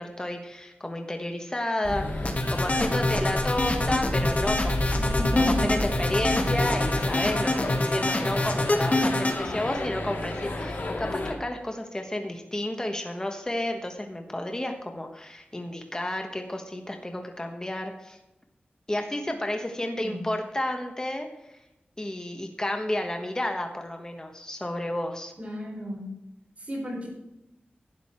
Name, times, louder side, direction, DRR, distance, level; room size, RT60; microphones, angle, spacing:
voice 1, 0.0-18.2 18.9-21.3 22.0-25.3, left 1 dB, 20° left, 4 dB, 1.3 m, -31 dB
sound 1, 1.8-11.3, left 1 dB, 75° left, 2.3 m, -31 dB
sound 2, 2.2-9.4, left 2 dB, 40° left, 1.6 m, -25 dB
voice 2, 5.2-5.8 20.0-20.2 25.4-26.0 26.7-27.1, left 1 dB, 40° right, -1 dB, 4.2 m, -33 dB
12.0 x 9.4 x 4.5 m, 0.90 s
wide cardioid pair, 95°, 3 cm